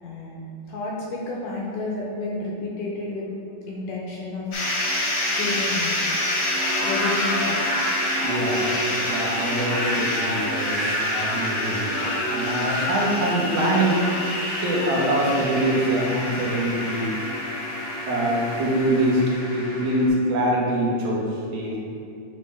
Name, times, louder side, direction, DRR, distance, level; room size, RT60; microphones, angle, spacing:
voice 1, 0.0-3.3 3.7-4.5 5.3-6.0 6.8-7.7 21.7-21.8, left 2 dB, 80° left, -3 dB, 2.0 m, -31 dB
sound 1, 4.5-20.1, left 1 dB, 60° left, 1.4 m, -26 dB
voice 2, 8.2-14.1 14.6-17.2 18.1-19.2 19.5-21.3 21.5-21.8, right 1 dB, 80° right, -4 dB, 2.9 m, -24 dB
9.6 x 3.4 x 3.3 m, 2.6 s
omnidirectional pair, 4.2 m